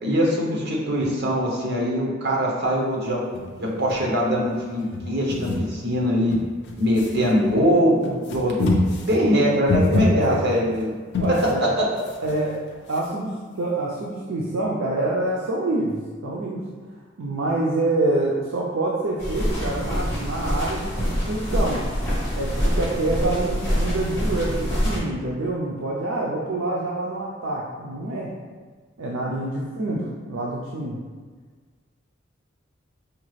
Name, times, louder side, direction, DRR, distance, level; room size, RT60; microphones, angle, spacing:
voice 1, 0.0-3.2 3.6-6.4 6.8-8.6 9.1-10.9 11.3-11.8, equal, 60° right, -2 dB, 0.9 m, -22 dB
sound 1, 3.3-4.6 4.8-5.7 6.2-7.6 8.0-11.6 12.0-13.2, left 2 dB, 60° left, 0.5 m, -27 dB
voice 2, 9.9-10.4 11.2-11.7 12.2-12.5 12.9-16.6 17.2-21.8 22.3-28.3 29.0-31.0, right 2 dB, 75° right, -4 dB, 0.4 m, -26 dB
sound 2, 19.2-25.0, equal, 15° left, 1.2 m, -25 dB
5.0 x 2.4 x 3.1 m, 1.5 s
head